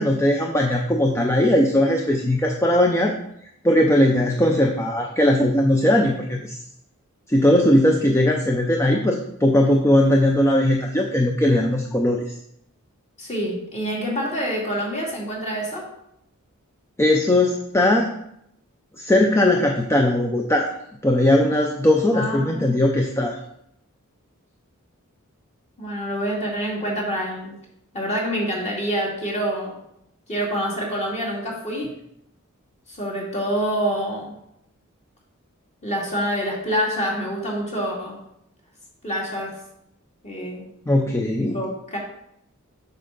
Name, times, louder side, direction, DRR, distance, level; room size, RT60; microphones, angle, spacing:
voice 1, 0.0-3.1 3.6-6.6 7.3-12.2 17.0-18.1 19.0-20.7 21.0-23.4 40.9-41.6, left 1 dB, 10° left, 1 dB, 0.5 m, -19 dB
voice 2, 13.2-15.9 22.1-22.7 25.8-27.6 27.9-29.8 30.3-31.9 32.9-34.3 35.8-38.2 39.0-39.6 40.2-40.6 41.4-42.0, equal, 30° left, -3 dB, 2.2 m, -26 dB
7.9 x 5.5 x 3.9 m, 0.77 s
head